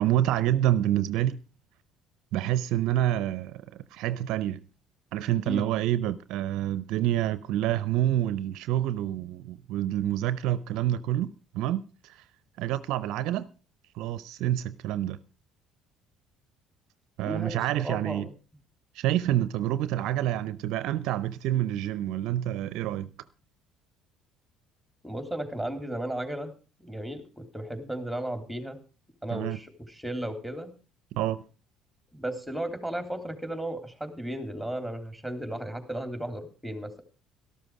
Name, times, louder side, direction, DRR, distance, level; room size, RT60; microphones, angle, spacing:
voice 1, 0.0-1.4 2.3-3.6 3.9-4.6 5.1-12.2 12.6-13.5 13.9-15.2 17.2-18.3 18.9-23.1 29.3-29.6 31.1-31.4, right 12 dB, 70° right, 0.6 m, -27 dB
voice 2, 17.2-18.3 25.0-26.5 26.8-28.8 29.2-30.7 32.1-36.9, right 1 dB, ahead, 3.5 m, -35 dB
13.0 x 12.5 x 4.9 m
hypercardioid pair, 60°, 0 cm